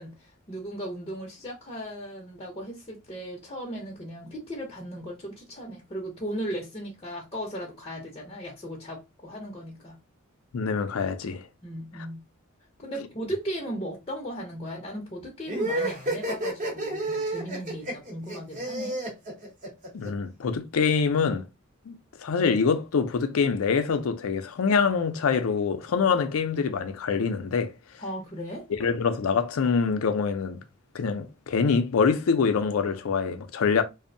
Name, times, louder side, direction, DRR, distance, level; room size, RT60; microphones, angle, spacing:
voice 1, 0.0-10.0 11.6-12.2 12.8-19.0 28.0-28.7, equal, 25° left, 0.6 m, -37 dB
voice 2, 10.5-11.4 19.9-21.4 21.9-22.0 22.2-27.7 28.8-30.6 30.9-33.8, left 5 dB, 75° left, 0.4 m, -25 dB
sound 1, 15.5-20.1, right 1 dB, 35° right, 0.9 m, -30 dB
2.6 x 2.0 x 2.6 m
head